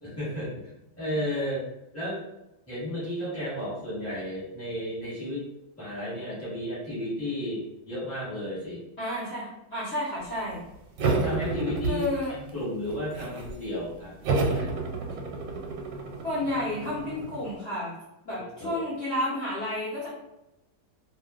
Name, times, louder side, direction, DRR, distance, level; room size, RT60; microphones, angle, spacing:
voice 1, 0.0-1.6 1.9-2.2 2.7-5.5 5.8-8.8 11.0-14.7 18.6-18.8, equal, 10° left, -9 dB, 0.9 m, -33 dB
voice 2, 9.0-10.6 11.9-12.3 16.2-17.9 18.2-20.1, left 1 dB, 50° left, -11 dB, 0.9 m, -31 dB
sound 1, 11.0-12.5 12.8-13.6 14.2-17.5, right 3 dB, 90° right, 1.2 m, -30 dB
2.6 x 2.3 x 2.4 m, 0.93 s
omnidirectional pair, 1.8 m